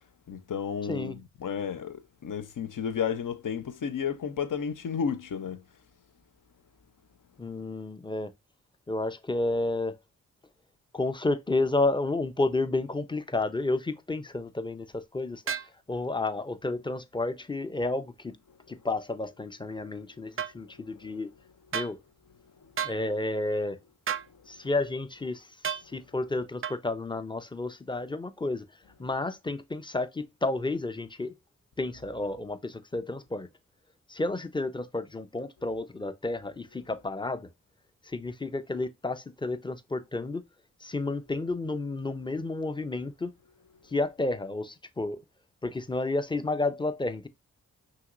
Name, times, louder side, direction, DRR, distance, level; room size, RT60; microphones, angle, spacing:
voice 1, 0.3-5.6 21.0-21.1, left 7 dB, 60° left, 0.8 m, -32 dB
voice 2, 7.4-8.3 8.9-10.0 10.9-18.4 18.7-21.3 21.7-22.0 22.8-23.8 24.5-25.5 25.9-28.7 29.0-31.3 31.8-33.5 34.1-37.5 38.1-40.4 40.8-43.3 43.9-45.2 45.6-47.3, left 2 dB, 15° left, 0.7 m, -31 dB
sound 1, 15.5-15.7 20.4-20.5 21.7-21.9 22.8-23.0 24.1-24.3 25.6-25.9 26.6-26.8, right 8 dB, 35° right, 0.5 m, -32 dB
5.7 x 2.9 x 2.6 m
supercardioid pair, 40°, 36 cm